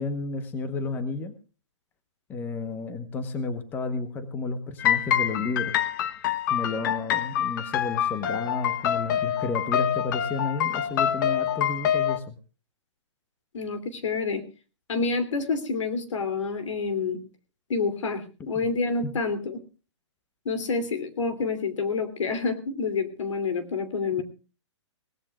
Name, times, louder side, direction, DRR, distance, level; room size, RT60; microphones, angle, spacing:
voice 1, 0.0-1.3 2.3-5.8 6.5-12.3 18.5-18.7 19.0-19.1, left 3 dB, 15° left, 11 dB, 1.0 m, -32 dB
sound 1, 4.8-12.2, left 10 dB, 40° left, 0.9 m, -26 dB
voice 2, 13.5-14.4 14.9-17.2 17.7-19.6 20.4-24.2, left 4 dB, 80° left, 10 dB, 3.0 m, -28 dB
21.5 x 17.5 x 2.3 m, 0.33 s
hypercardioid pair, 160°, 16 cm